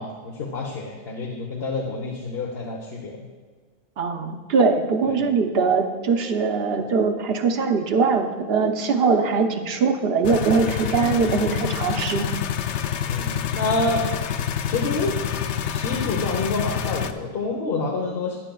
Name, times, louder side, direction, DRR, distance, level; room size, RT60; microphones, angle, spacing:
voice 1, 0.0-3.3 5.0-5.2 13.1-14.1 14.7-15.1 15.6-18.4, left 3 dB, 65° left, 0 dB, 1.2 m, -28 dB
voice 2, 4.0-12.3, right 4 dB, 65° right, 6 dB, 1.0 m, -21 dB
sound 1, 10.2-17.1, left 9 dB, 85° left, 0.9 m, -27 dB
13.5 x 10.0 x 2.3 m, 1.5 s
omnidirectional pair, 1.1 m